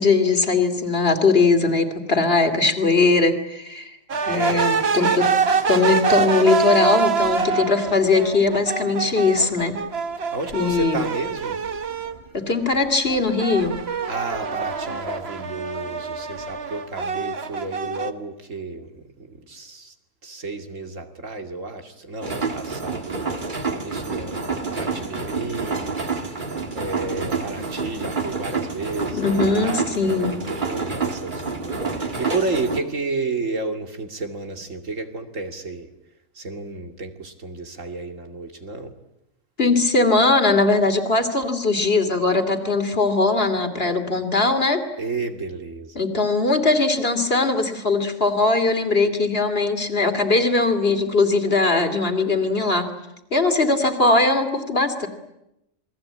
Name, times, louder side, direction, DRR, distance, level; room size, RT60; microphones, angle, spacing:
voice 1, 0.0-3.9 4.3-5.3 5.7-9.8 10.5-11.0 12.3-13.7 29.1-30.3 39.6-44.8 46.0-52.9 53.3-55.1, left 3 dB, 50° left, 7 dB, 2.8 m, -20 dB
sound 1, 4.1-12.2 12.6-18.1, right 5 dB, 55° right, 1.5 m, -25 dB
voice 2, 4.2-4.7 10.3-11.6 14.1-19.9 20.2-23.2 23.7-25.9 26.5-35.9 36.3-38.9 45.0-46.0, right 3 dB, 80° right, 5 dB, 3.0 m, -32 dB
sound 2, 22.2-32.8, right 4 dB, 40° right, 2.0 m, -28 dB
28.0 x 21.5 x 8.7 m, 0.87 s
omnidirectional pair, 1.3 m